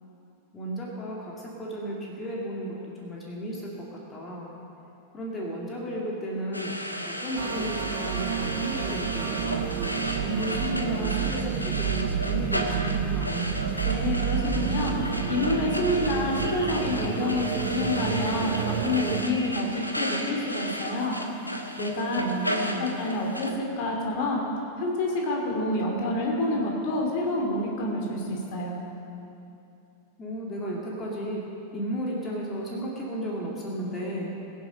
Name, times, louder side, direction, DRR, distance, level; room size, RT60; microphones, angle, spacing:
voice 1, 0.5-3.9 4.1-4.5 5.1-6.8 7.0-9.7 10.2-13.5 22.1-22.9 30.2-31.4 31.7-34.3, equal, 20° left, -3 dB, 2.4 m, -34 dB
sound 1, 6.5-23.5, equal, 85° left, 1.1 m, -34 dB
sound 2, 7.4-19.2, right 8 dB, 50° right, 1.0 m, -30 dB
voice 2, 13.8-14.9 15.3-17.5 17.7-21.2 21.7-22.2 22.8-24.4 24.8-28.8, left 2 dB, 50° left, 0 dB, 2.7 m, -28 dB
22.5 x 7.5 x 5.4 m, 2.8 s
figure-of-eight pair, 90°, 0 cm